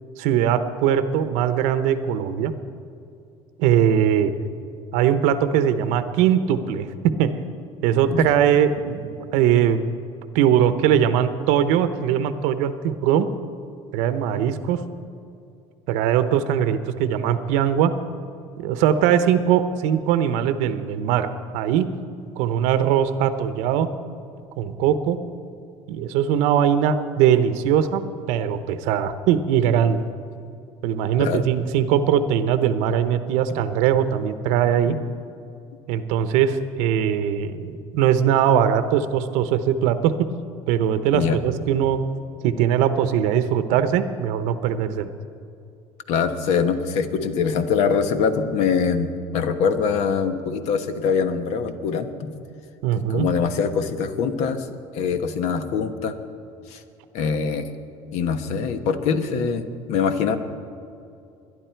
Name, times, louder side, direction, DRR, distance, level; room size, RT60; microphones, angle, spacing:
voice 1, 0.2-2.5 3.6-4.3 4.9-7.3 7.8-9.8 10.3-13.3 13.9-14.8 15.9-17.9 18.6-21.9 22.4-23.9 24.6-25.2 25.9-30.0 30.8-35.0 35.9-40.1 40.7-42.0 42.4-45.1 52.8-53.3, right 9 dB, 85° right, 11 dB, 0.8 m, -21 dB
voice 2, 46.1-52.3 53.1-54.7 54.9-56.1 56.7-56.8 57.1-57.7 58.1-60.4, left 6 dB, 70° left, 9 dB, 1.1 m, -23 dB
21.0 x 11.0 x 4.5 m, 2.6 s
cardioid pair, 145°, 12 cm